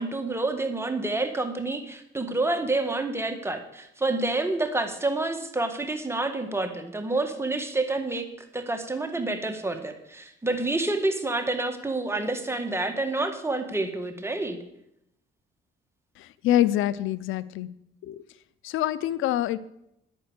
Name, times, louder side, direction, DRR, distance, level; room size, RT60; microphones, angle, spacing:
voice 1, 0.0-8.3 8.5-14.6, right 2 dB, 10° right, 5 dB, 1.9 m, -28 dB
voice 2, 16.2-17.7 18.0-18.2 18.6-19.6, left 13 dB, 90° left, 18 dB, 0.6 m, -25 dB
10.0 x 9.0 x 8.2 m, 0.79 s
cardioid pair, 90°, 20 cm